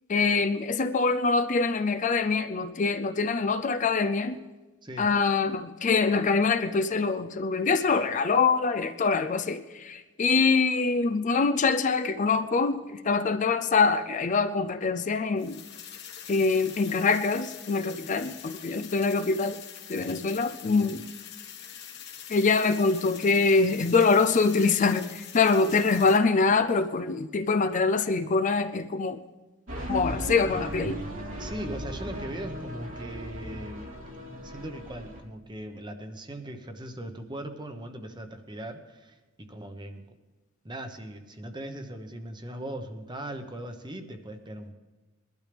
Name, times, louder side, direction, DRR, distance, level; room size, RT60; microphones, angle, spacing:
voice 1, 0.1-4.4 5.0-15.6 16.3-19.6 19.9-21.0 22.3-29.2 29.9-31.0, left 4 dB, 40° left, 10 dB, 0.5 m, -24 dB
sound 1, 15.4-26.2, left 9 dB, 55° left, 1.4 m, -44 dB
sound 2, 29.7-35.2, equal, 75° right, 3.3 m, -36 dB
voice 2, 31.3-33.8 34.4-40.0 40.6-44.7, right 1 dB, 20° right, 6 dB, 1.1 m, -39 dB
21.5 x 12.0 x 3.4 m, 1.2 s
head